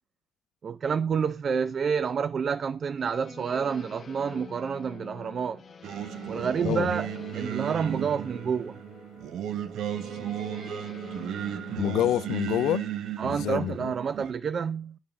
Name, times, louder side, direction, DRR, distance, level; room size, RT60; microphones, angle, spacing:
voice 1, 0.6-5.6 6.3-7.1 7.3-8.8 13.2-15.0, right 6 dB, 50° right, 0.4 m, -29 dB
sound 1, 3.0-12.5, left 6 dB, 45° left, 0.9 m, -46 dB
Singing, 5.8-14.3, right 11 dB, 75° right, 0.8 m, -35 dB
voice 2, 11.8-12.9 13.2-13.9, left 12 dB, 85° left, 0.3 m, -27 dB
9.1 x 3.5 x 6.8 m
cardioid pair, 90°, 0 cm